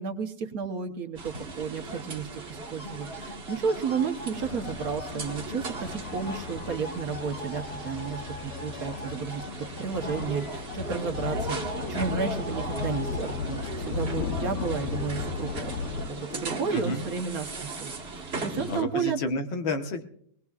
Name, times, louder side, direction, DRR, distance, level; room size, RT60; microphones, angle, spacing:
voice 1, 0.0-9.4 9.8-15.7 16.1-17.9 18.4-19.2, right 6 dB, 55° right, 6 dB, 1.3 m, -32 dB
sound 1, 1.2-18.8, right 3 dB, 35° right, 1.5 m, -38 dB
sound 2, 2.5-17.5, left 2 dB, 35° left, 1.2 m, -43 dB
sound 3, 4.4-16.1, left 5 dB, 55° left, 0.8 m, -36 dB
voice 2, 16.7-17.0 18.6-20.0, left 2 dB, 80° left, 5 dB, 2.0 m, -30 dB
22.0 x 18.5 x 2.4 m, 0.64 s
omnidirectional pair, 2.1 m